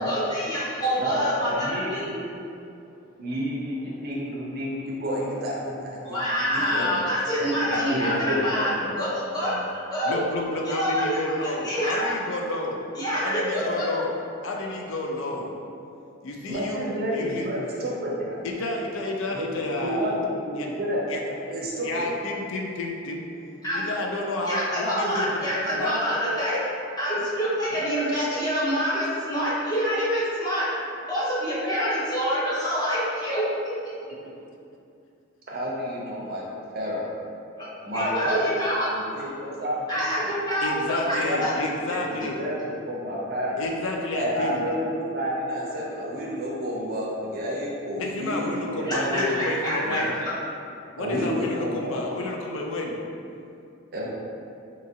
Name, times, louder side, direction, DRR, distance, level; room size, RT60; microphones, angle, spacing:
voice 1, 0.0-2.0 6.0-8.7 9.0-9.5 9.9-10.2 10.8-12.1 13.0-13.8 23.6-23.9 24.5-26.6 27.0-30.7 31.1-33.5 37.6-37.7 37.9-38.9 39.9-41.6 48.9-50.3, equal, 20° left, -10 dB, 0.7 m, -26 dB
voice 2, 1.0-2.4 3.2-6.2 6.5-6.9 7.4-7.5 7.8-8.6 16.5-18.5 19.3-19.5 19.8-22.0 35.5-36.5 36.7-37.1 37.8-38.5 38.9-40.0 41.2-41.7 42.0-43.6 44.1-49.4 49.9-50.1 51.0-51.9 53.9-54.1, equal, 45° right, -4 dB, 0.5 m, -30 dB
voice 3, 6.5-7.1 7.6-9.6 10.1-12.8 13.2-14.2 14.4-15.5 16.2-17.5 18.4-20.2 20.6-20.7 21.1-21.2 21.8-23.2 23.7-26.0 27.2-27.3 27.7-27.9 40.6-42.4 43.6-44.7 48.0-50.1 51.0-53.0, left 2 dB, 70° left, 0 dB, 0.4 m, -31 dB
2.8 x 2.4 x 2.7 m, 2.6 s
head